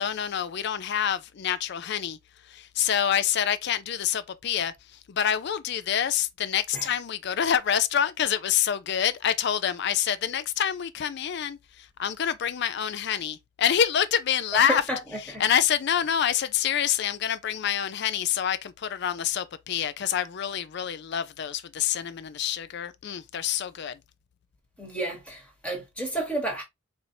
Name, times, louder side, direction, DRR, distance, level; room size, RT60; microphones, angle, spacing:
voice 1, 0.0-2.2 2.5-4.7 5.1-14.8 15.4-24.0, left 9 dB, 55° left, 0.4 m, -27 dB
voice 2, 14.5-15.4 24.8-26.6, right 1 dB, 5° left, 1.2 m, -31 dB
4.4 x 2.7 x 2.7 m
head